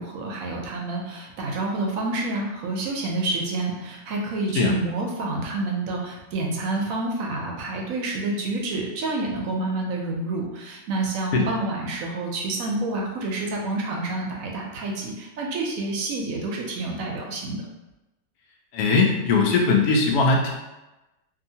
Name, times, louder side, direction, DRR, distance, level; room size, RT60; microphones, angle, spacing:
voice 1, 0.0-17.6, right 2 dB, 70° right, 0 dB, 0.9 m, -28 dB
voice 2, 18.7-20.5, left 3 dB, 85° left, 0 dB, 1.1 m, -20 dB
2.7 x 2.6 x 2.7 m, 1.0 s
omnidirectional pair, 1.6 m